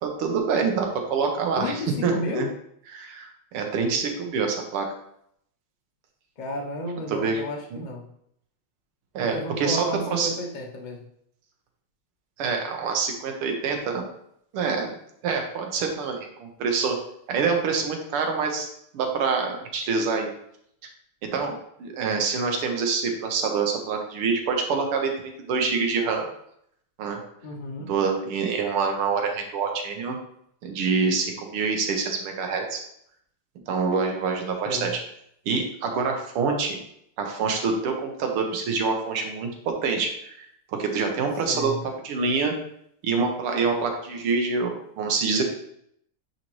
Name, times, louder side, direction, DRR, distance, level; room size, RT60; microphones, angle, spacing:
voice 1, 0.0-2.5 2.9-4.9 7.1-7.4 7.7-7.8 9.1-9.9 10.1-10.3 12.4-14.1 14.5-15.0 15.2-17.0 17.3-18.7 18.9-20.3 21.2-26.3 27.0-27.2 27.9-30.2 30.6-32.8 33.7-34.9 35.5-36.8 37.2-39.5 39.8-40.5 40.8-41.7 42.0-42.5 43.0-45.4, right 5 dB, 85° right, 3 dB, 1.9 m, -26 dB
voice 2, 1.5-2.5 6.4-8.1 9.2-11.1 27.4-27.9 34.6-35.0 41.4-41.8, left 1 dB, 80° left, 1 dB, 0.4 m, -33 dB
9.3 x 4.2 x 3.1 m, 0.71 s
omnidirectional pair, 2.4 m